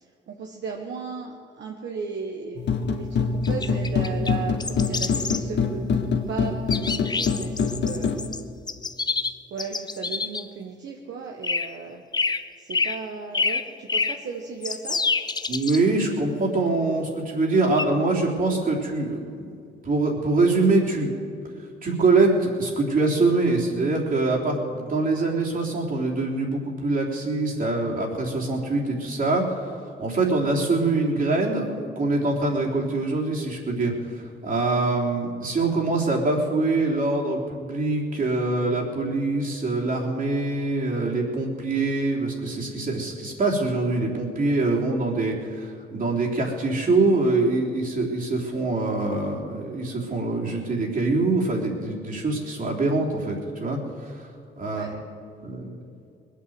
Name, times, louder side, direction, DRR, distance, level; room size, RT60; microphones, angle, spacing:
voice 1, 0.3-6.5 6.8-8.1 9.5-12.0 12.6-15.0 54.7-55.0, right 5 dB, 65° right, 1 dB, 1.4 m, -35 dB
sound 1, 2.6-8.2, left 5 dB, 60° left, 1.5 m, -25 dB
sound 2, 3.4-4.3 4.6-5.4 6.7-8.4 8.7-10.5 11.4-11.7 12.1-12.4 12.7-13.0 13.3-14.2 14.6-15.8 17.8-17.9, left 4 dB, 20° left, 0.6 m, -27 dB
voice 2, 15.5-19.6 19.8-21.1 21.8-54.3 54.6-55.0 55.4-55.8, right 3 dB, 45° right, -2 dB, 3.5 m, -24 dB
20.5 x 8.5 x 7.9 m, 2.4 s
cardioid pair, 90°, 20 cm